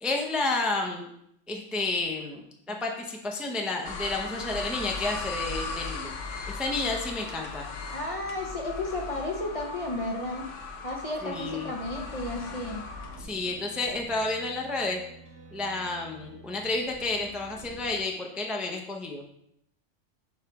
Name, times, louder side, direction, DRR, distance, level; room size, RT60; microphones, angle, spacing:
voice 1, 0.0-1.1 1.5-2.4 2.7-6.1 6.5-7.7 11.2-11.7 13.2-15.0 15.5-19.2, left 2 dB, ahead, 1 dB, 0.7 m, -31 dB
sound 1, 3.8-13.2, left 4 dB, 90° left, 1.1 m, -38 dB
voice 2, 7.9-10.5 10.8-12.8, left 2 dB, 30° left, 0 dB, 0.8 m, -33 dB
sound 2, 11.2-18.0, right 2 dB, 75° right, 2.0 m, -48 dB
7.1 x 3.2 x 5.9 m, 0.74 s
omnidirectional pair, 1.2 m